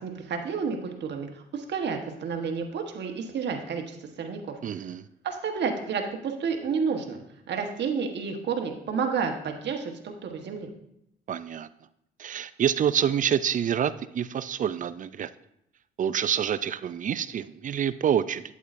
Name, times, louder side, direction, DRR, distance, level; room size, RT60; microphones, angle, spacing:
voice 1, 0.0-4.4 5.2-7.2 7.5-10.7, right 5 dB, 60° right, 4 dB, 1.2 m, -30 dB
voice 2, 4.6-5.0 11.3-11.7 12.2-15.3 16.0-18.4, right 9 dB, 40° right, 15 dB, 0.4 m, -27 dB
8.4 x 8.4 x 2.6 m, 0.78 s
cardioid pair, 90°, 20 cm